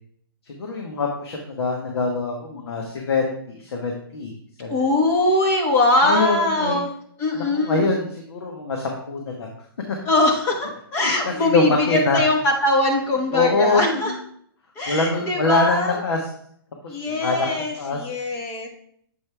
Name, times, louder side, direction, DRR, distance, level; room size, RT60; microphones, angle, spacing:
voice 1, 0.5-4.3 4.6-4.7 6.0-6.8 7.3-9.5 11.0-12.2 13.3-14.1 14.9-16.3 16.8-17.5 17.8-18.0, left 3 dB, 85° left, 1 dB, 1.3 m, -24 dB
voice 2, 4.7-6.9 7.2-7.9 10.0-14.1 14.8-16.0 16.9-18.7, left 2 dB, 20° left, 2 dB, 1.1 m, -21 dB
7.7 x 4.8 x 3.3 m, 0.65 s
hypercardioid pair, 170°, 13 cm